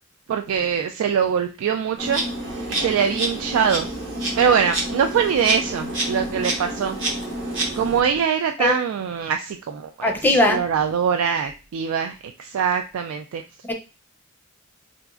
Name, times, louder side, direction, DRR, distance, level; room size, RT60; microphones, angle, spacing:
voice 1, 0.3-2.2 2.7-3.9 4.4-7.0 7.8-13.4, right 7 dB, 85° right, 0.3 m, -23 dB
Insect, 2.0-8.0, right 1 dB, 65° right, 1.0 m, -28 dB
voice 2, 10.0-10.6 13.7-13.8, left 1 dB, 10° left, 0.5 m, -19 dB
3.9 x 2.4 x 2.3 m
head